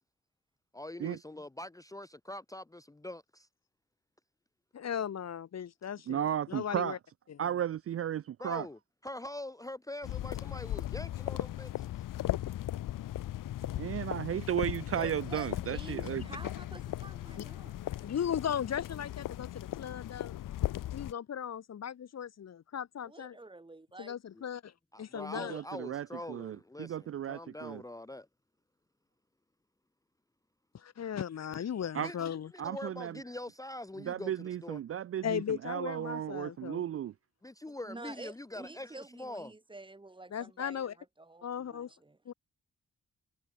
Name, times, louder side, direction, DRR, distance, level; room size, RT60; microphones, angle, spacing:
voice 1, 0.7-3.5 8.4-12.0 18.0-18.1 24.3-24.4 24.9-28.3 32.0-32.2 32.5-34.8 37.4-39.5, left 1 dB, 10° left, 0.9 m, -44 dB
voice 2, 4.7-7.0 7.3-7.4 18.0-20.4 20.9-23.4 24.0-24.7 25.0-25.5 30.7-32.5 35.2-36.8 40.3-40.9 41.4-41.9 42.3-42.4, left 8 dB, 55° left, 1.2 m, -37 dB
voice 3, 6.1-7.0 7.4-8.7 13.8-16.3 25.3-27.8 31.9-32.1 32.6-33.2 34.0-37.1, right 10 dB, 50° right, 0.4 m, -35 dB
sound 1, 10.0-21.1, left 13 dB, 90° left, 0.8 m, -37 dB
voice 4, 14.9-17.8 23.0-24.2 37.9-42.2, right 2 dB, 15° right, 1.9 m, -48 dB
wide cardioid pair, 120°, 31 cm